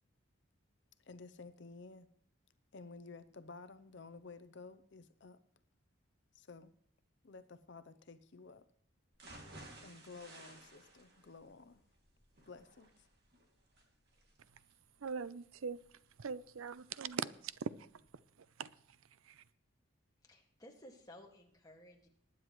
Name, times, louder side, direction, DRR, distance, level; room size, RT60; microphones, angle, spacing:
voice 1, 1.0-2.1 2.7-5.4 6.3-6.7 7.2-8.6 9.8-11.8 12.5-13.1, left 4 dB, 55° left, 0.6 m, -53 dB
sound 1, 9.1-17.1 17.5-17.6 18.0-18.1, right 2 dB, 50° right, 2.4 m, -57 dB
voice 2, 15.0-15.8 16.2-17.7 18.6-18.7 19.3-19.4, right 6 dB, 80° right, 0.5 m, -41 dB
voice 3, 20.2-22.1, left 1 dB, 15° left, 1.9 m, -57 dB
20.0 x 9.6 x 3.1 m
head